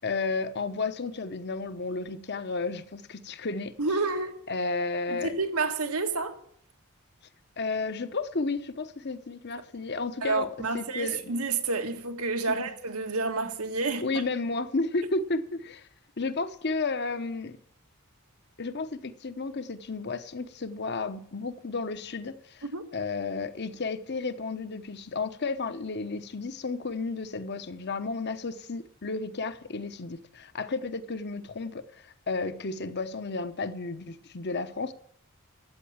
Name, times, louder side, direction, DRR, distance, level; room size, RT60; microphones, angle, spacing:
voice 1, 0.0-3.7 4.5-5.3 7.6-11.3 12.5-12.6 14.0-15.8 16.2-17.6 18.6-22.6 22.9-31.8 32.3-34.9, left 3 dB, 50° left, 0.9 m, -32 dB
voice 2, 3.8-4.3 5.1-6.4 10.2-14.2 22.6-22.9, right 3 dB, 85° right, 1.7 m, -29 dB
13.5 x 8.3 x 8.7 m
head